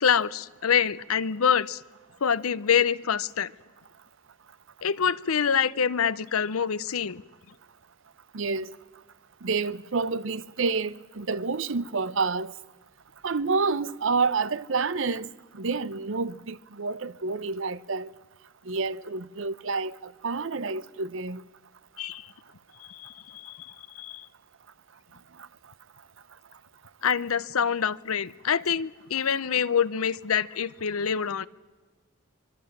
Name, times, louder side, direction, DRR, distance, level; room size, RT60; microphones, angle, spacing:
voice 1, 0.0-1.8 2.2-3.5 4.8-7.2 22.0-22.3 22.8-24.3 27.0-31.5, left 7 dB, 90° left, 0.7 m, -26 dB
voice 2, 8.3-8.8 9.4-12.5 13.2-15.3 15.5-18.1 18.7-21.4, right 4 dB, 65° right, 0.7 m, -29 dB
25.5 x 22.5 x 7.3 m
head